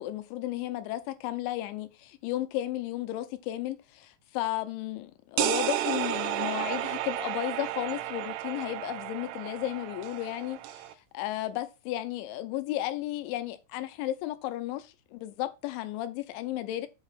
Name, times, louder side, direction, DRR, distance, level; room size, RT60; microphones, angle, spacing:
voice 1, 0.0-10.8 11.1-16.9, left 14 dB, 85° left, 2.9 m, -34 dB
sound 1, 5.4-10.9, right 13 dB, 80° right, 3.0 m, -32 dB
8.1 x 3.0 x 5.8 m
omnidirectional pair, 5.6 m